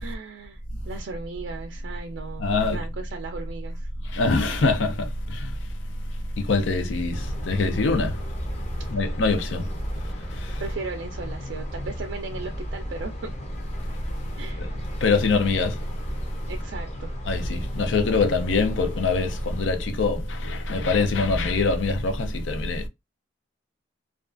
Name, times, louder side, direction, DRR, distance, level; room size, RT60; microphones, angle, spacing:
voice 1, 0.0-3.9 10.6-13.3 14.4-14.7 16.5-17.1, right 4 dB, 75° right, 0.4 m, -37 dB
voice 2, 2.4-2.8 4.1-5.5 6.4-8.2 8.9-9.6 10.4-10.6 14.6-14.7 15.0-15.8 17.3-22.8, left 3 dB, 85° left, 0.5 m, -24 dB
sound 1, 7.1-19.7, left 1 dB, 35° left, 0.6 m, -37 dB
2.4 x 2.3 x 2.4 m
head